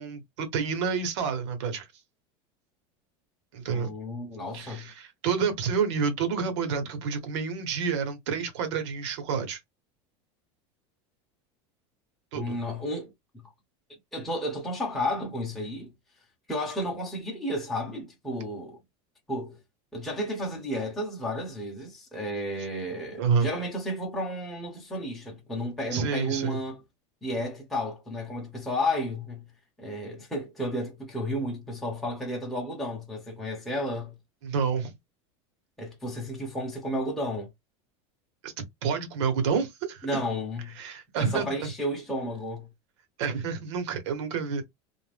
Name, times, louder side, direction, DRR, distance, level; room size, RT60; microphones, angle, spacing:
voice 1, 0.0-1.9 3.5-3.9 4.5-9.6 12.3-12.6 23.2-23.5 25.9-26.6 34.4-34.9 38.4-38.5 38.8-40.1 40.8-41.7 43.2-44.6, right 6 dB, 80° right, 1.1 m, -29 dB
voice 2, 3.7-4.9 12.3-13.1 14.1-15.9 16.5-18.8 19.3-19.6 19.9-26.8 27.2-29.4 29.8-34.1 35.8-37.5 40.0-40.8 41.2-42.7, left 1 dB, ahead, 0.7 m, -32 dB
2.5 x 2.1 x 3.3 m
supercardioid pair, 175°, 15 cm